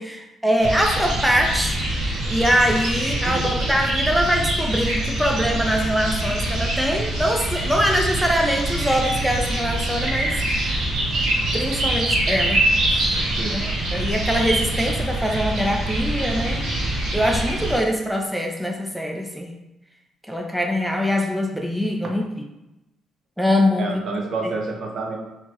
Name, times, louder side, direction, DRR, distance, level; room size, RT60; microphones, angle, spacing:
voice 1, 0.0-10.9 11.5-13.1 13.5-19.5 20.3-22.3 23.4-24.0 24.4-24.5, equal, ahead, 1 dB, 0.5 m, -23 dB
sound 1, 0.6-17.8, right 1 dB, 80° right, 1.3 m, -24 dB
voice 2, 13.4-13.7 23.8-25.2, right 3 dB, 60° right, 0 dB, 0.8 m, -28 dB
4.2 x 2.9 x 2.9 m, 0.94 s
cardioid pair, 90°, 0 cm